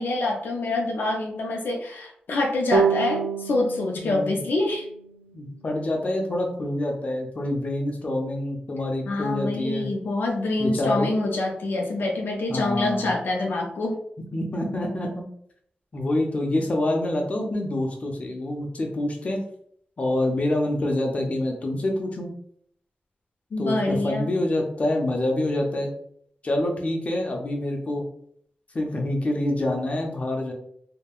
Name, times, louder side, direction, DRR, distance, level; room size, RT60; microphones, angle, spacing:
voice 1, 0.0-4.9 9.1-14.0 23.5-24.3, left 2 dB, 85° left, 0 dB, 0.5 m, -26 dB
sound 1, 2.7-6.0, right 5 dB, 85° right, 0.3 m, -28 dB
voice 2, 4.0-4.4 5.3-9.9 10.6-11.1 12.5-13.1 14.3-15.3 15.9-19.4 20.0-22.3 23.6-25.9 26.4-28.0 28.7-30.5, left 1 dB, 45° left, 1 dB, 0.6 m, -26 dB
3.5 x 2.2 x 2.3 m, 0.65 s
wide cardioid pair, 100°, 3 cm